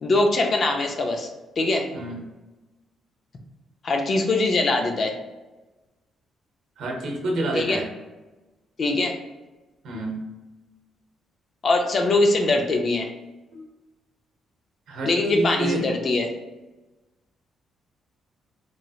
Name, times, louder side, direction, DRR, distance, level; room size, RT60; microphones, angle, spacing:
voice 1, 0.0-1.3 1.6-1.9 3.8-5.2 7.5-7.8 8.8-9.2 11.6-13.1 15.0-16.3, left 2 dB, 40° left, 3 dB, 0.4 m, -22 dB
voice 2, 1.9-2.2 6.8-7.9 9.8-10.3 13.5-13.7 14.9-15.9, right 2 dB, 80° right, 0 dB, 0.7 m, -28 dB
3.0 x 2.7 x 2.3 m, 1.1 s
cardioid pair, 150°, 0 cm